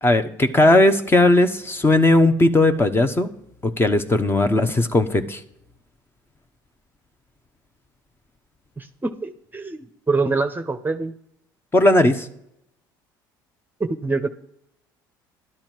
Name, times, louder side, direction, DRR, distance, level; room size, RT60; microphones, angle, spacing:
voice 1, 0.0-3.3 3.6-5.4 11.7-12.3, left 2 dB, 20° left, 9 dB, 1.1 m, -17 dB
voice 2, 8.8-11.1 13.8-14.3, right 3 dB, 15° right, 9 dB, 0.8 m, -25 dB
12.0 x 10.0 x 4.6 m, 0.75 s
hypercardioid pair, 65°, 11 cm